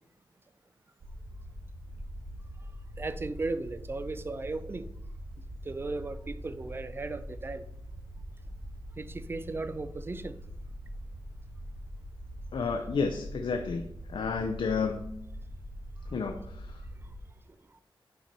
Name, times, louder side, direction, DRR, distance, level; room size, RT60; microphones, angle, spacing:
sound 1, 1.0-17.2, equal, 75° right, 1.3 m, -43 dB
voice 1, 3.0-4.9 5.6-7.7 9.0-10.4, right 3 dB, 25° right, 0.4 m, -36 dB
voice 2, 12.5-15.1 16.1-16.8, left 5 dB, 75° left, 0.5 m, -31 dB
5.7 x 4.4 x 5.3 m
wide cardioid pair, 125°, 9 cm